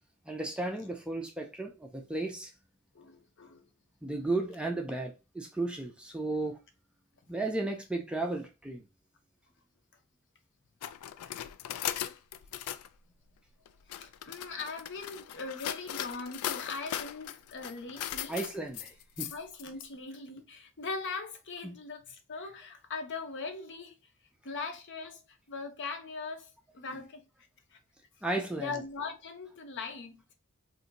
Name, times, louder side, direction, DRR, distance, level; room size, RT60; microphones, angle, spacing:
voice 1, 0.3-2.5 4.0-6.6 7.3-8.8 18.3-19.3 21.6-21.7 28.2-28.7, right 2 dB, 5° right, 0.4 m, -34 dB
voice 2, 2.9-3.7 13.9-18.4 19.3-24.1 24.4-27.2 27.7-27.8 28.6-30.2, left 4 dB, 55° left, 0.7 m, -40 dB
sound 1, 10.8-12.9 13.7-19.8, left 11 dB, 80° left, 0.3 m, -38 dB
2.7 x 2.5 x 3.9 m
head